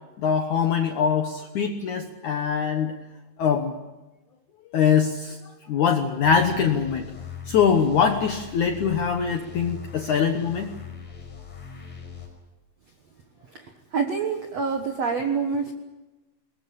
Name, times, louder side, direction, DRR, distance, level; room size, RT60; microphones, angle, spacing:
voice 1, 0.2-2.9 3.4-3.8 4.7-7.1 7.5-10.7, left 7 dB, 85° left, 5 dB, 1.7 m, -23 dB
sound 1, 6.2-12.3, left 6 dB, 40° left, 6.4 m, -41 dB
voice 2, 13.9-15.7, right 5 dB, 90° right, 4 dB, 1.4 m, -26 dB
22.0 x 20.5 x 8.6 m, 1.1 s
omnidirectional pair, 5.4 m